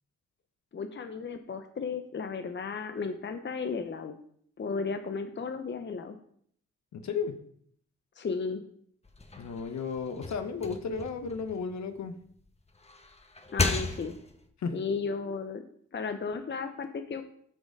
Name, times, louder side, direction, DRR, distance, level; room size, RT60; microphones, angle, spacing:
voice 1, 0.7-4.2 4.6-6.2 8.2-8.6 13.5-14.1 14.7-15.6 15.9-17.2, left 5 dB, 35° left, 7 dB, 0.9 m, -34 dB
voice 2, 6.9-7.4 9.4-12.1 14.6-14.8, left 5 dB, 55° left, 7 dB, 1.2 m, -34 dB
sound 1, 9.0-12.2 12.7-14.5, left 3 dB, 20° left, 1.2 m, -35 dB
7.2 x 5.3 x 4.8 m, 0.64 s
hypercardioid pair, 45°, 33 cm